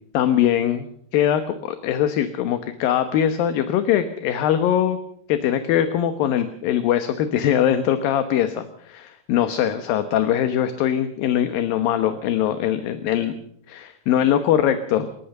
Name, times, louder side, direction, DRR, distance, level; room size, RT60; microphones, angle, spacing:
voice 1, 0.1-0.9 1.1-5.0 5.3-13.3 13.7-15.1, left 10 dB, 70° left, 9 dB, 2.8 m, -21 dB
28.0 x 14.0 x 6.7 m, 0.66 s
omnidirectional pair, 4.5 m